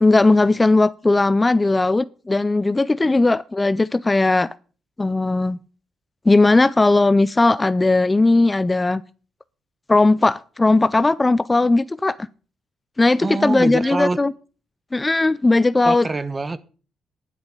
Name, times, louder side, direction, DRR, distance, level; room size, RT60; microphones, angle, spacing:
voice 1, 0.0-4.5 5.0-5.6 6.3-9.0 9.9-12.2 13.0-14.3 14.9-16.1, left 2 dB, 20° left, 0.4 m, -17 dB
voice 2, 13.2-14.2 15.8-16.6, right 3 dB, 25° right, 1.0 m, -24 dB
11.0 x 9.3 x 5.2 m
cardioid pair, 90°, 0 cm